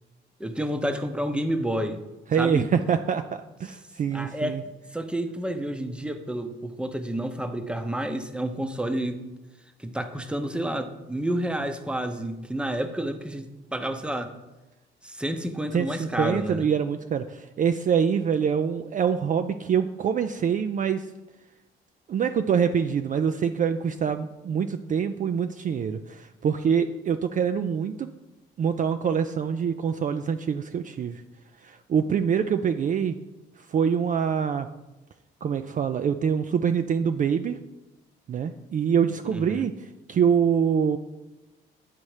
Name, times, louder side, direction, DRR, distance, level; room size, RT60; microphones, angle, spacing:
voice 1, 0.4-2.0 2.3-2.7 4.1-4.6 4.9-9.2 9.8-14.3 15.0-16.6 39.3-39.6, right 1 dB, 5° right, 8 dB, 0.7 m, -30 dB
voice 2, 2.3-4.6 15.7-21.1 22.1-28.1 28.6-31.2 31.6-33.1 33.6-34.7 35.4-37.6 38.3-41.0, right 7 dB, 40° right, 8 dB, 0.4 m, -25 dB
9.0 x 4.2 x 4.9 m, 1.1 s
cardioid pair, 90°, 20 cm